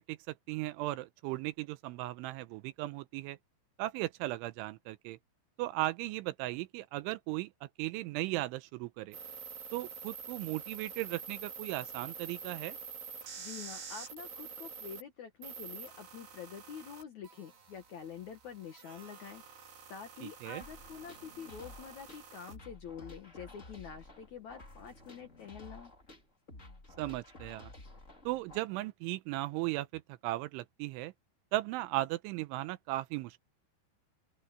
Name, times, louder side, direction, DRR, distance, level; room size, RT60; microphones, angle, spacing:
voice 1, 0.0-3.4 3.8-5.2 5.6-9.2 9.7-12.8 20.2-20.6 27.0-27.7 28.2-31.1 31.5-33.4, right 18 dB, 85° right, 3.1 m, -37 dB
sound 1, 9.1-15.0 15.4-22.6, right 6 dB, 60° right, 6.3 m, -47 dB
voice 2, 13.4-25.9, left 7 dB, 70° left, 1.8 m, -47 dB
sound 2, 20.6-28.6, left 2 dB, 20° left, 2.9 m, -52 dB
open air
omnidirectional pair, 5.5 m